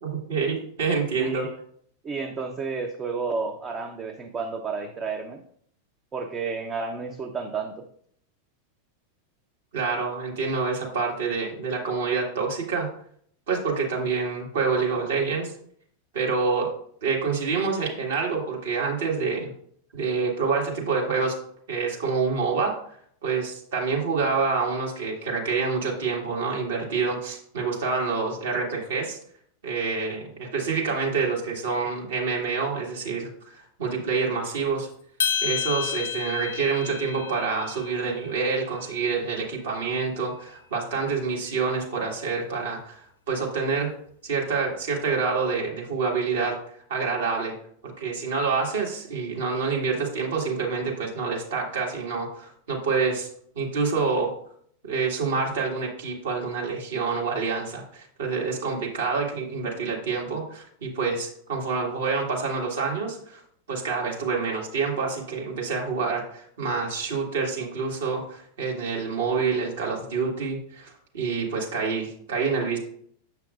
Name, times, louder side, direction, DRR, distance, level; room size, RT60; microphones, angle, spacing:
voice 1, 0.0-1.5 9.7-12.9 13.5-15.5 16.1-16.7 17.0-19.5 19.9-21.4 21.7-22.7 23.2-29.2 29.6-34.9 35.4-43.9 44.2-46.6 46.9-47.5 47.8-53.3 53.5-54.3 54.8-63.4 63.7-72.8, right 4 dB, 60° right, -1 dB, 1.6 m, -27 dB
voice 2, 1.2-1.5 2.0-5.4 6.1-7.8, right 4 dB, 25° right, 4 dB, 0.5 m, -31 dB
sound 1, 35.2-39.6, left 8 dB, 65° left, 0.6 m, -32 dB
6.9 x 5.8 x 2.3 m, 0.64 s
figure-of-eight pair, 90°, 0 cm